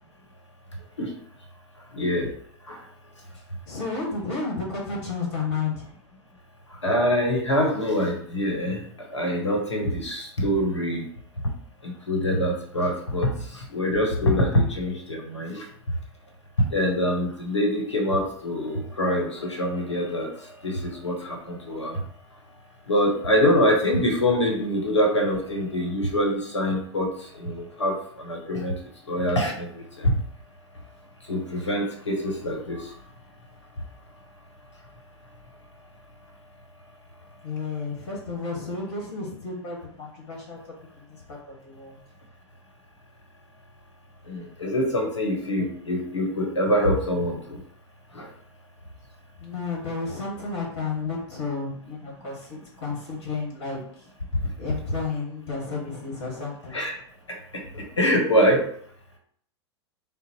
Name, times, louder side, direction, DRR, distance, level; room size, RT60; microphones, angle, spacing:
voice 1, 1.9-2.3 2.7-2.8 6.7-11.1 11.8-15.7 16.6-22.0 22.9-28.7 29.1-30.2 31.3-32.9 44.3-47.6 48.1-48.3 56.7-56.9 57.3-58.7, equal, 85° left, 1 dB, 1.0 m, -25 dB
voice 2, 3.3-5.9 37.4-40.6 41.0-42.0 49.4-54.1 54.6-56.8, left 4 dB, 60° left, -2 dB, 1.4 m, -32 dB
3.9 x 2.0 x 4.2 m, 0.62 s
figure-of-eight pair, 90°, 15 cm